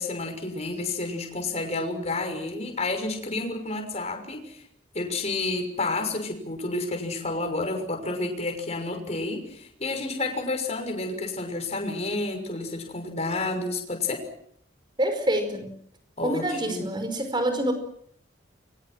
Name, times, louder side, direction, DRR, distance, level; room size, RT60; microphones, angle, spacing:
voice 1, 0.0-4.6 4.9-14.2 16.2-16.9, left 2 dB, 35° left, 4 dB, 6.2 m, -30 dB
voice 2, 15.0-15.7 16.2-17.7, right 1 dB, 25° right, 7 dB, 5.2 m, -26 dB
30.0 x 24.0 x 6.2 m, 0.65 s
head